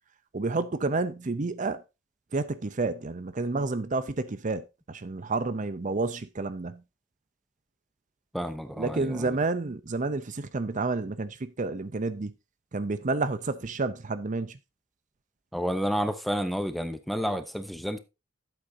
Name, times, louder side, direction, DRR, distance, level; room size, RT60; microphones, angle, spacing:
voice 1, 0.3-1.8 2.3-6.8 8.8-12.3 12.7-14.6, right 3 dB, 40° right, 0.6 m, -30 dB
voice 2, 8.3-9.4 15.5-18.0, equal, ahead, 0.8 m, -30 dB
12.0 x 7.9 x 2.7 m
head